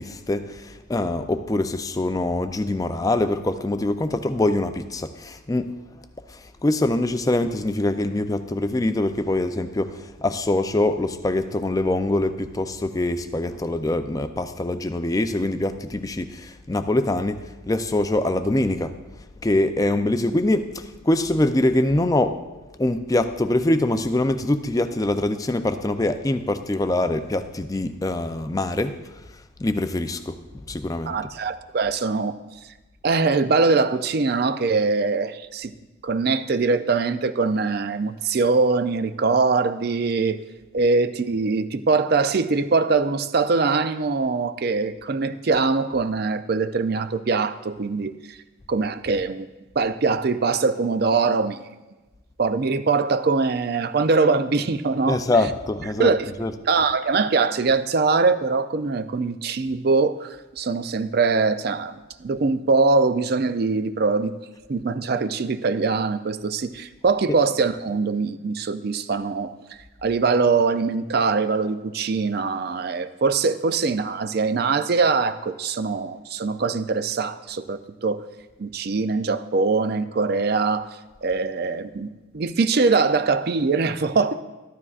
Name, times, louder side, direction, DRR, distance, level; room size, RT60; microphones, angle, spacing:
voice 1, 0.0-5.7 6.3-17.4 17.7-18.9 19.4-22.4 22.8-28.9 29.6-30.4 30.7-31.2 55.1-56.6 67.3-67.4, left 1 dB, 15° left, 9 dB, 0.4 m, -24 dB
voice 2, 31.1-32.3 33.0-35.7 36.0-40.4 40.7-48.4 48.7-49.5 49.8-51.6 52.4-55.2 56.0-56.3 56.7-64.3 64.7-69.5 70.0-78.2 78.6-80.9 81.2-82.1 82.3-84.4, right 4 dB, 50° right, 12 dB, 0.4 m, -22 dB
14.0 x 12.0 x 2.4 m, 1.1 s
head